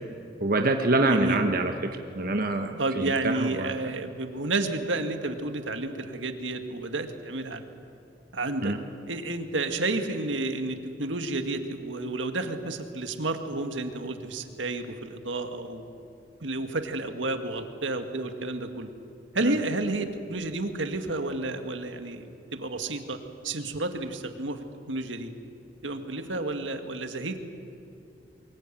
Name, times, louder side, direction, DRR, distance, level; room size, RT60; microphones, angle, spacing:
voice 1, 0.4-1.7 2.1-3.7 8.6-8.8 19.4-19.5, right 2 dB, 50° right, 4 dB, 1.2 m, -25 dB
voice 2, 1.0-1.4 2.8-7.6 8.3-8.7 9.1-15.9 16.4-18.9 19.3-23.2 23.4-25.3 25.8-27.4, right 2 dB, 85° right, 6 dB, 1.9 m, -31 dB
23.0 x 21.0 x 9.1 m, 2.6 s
head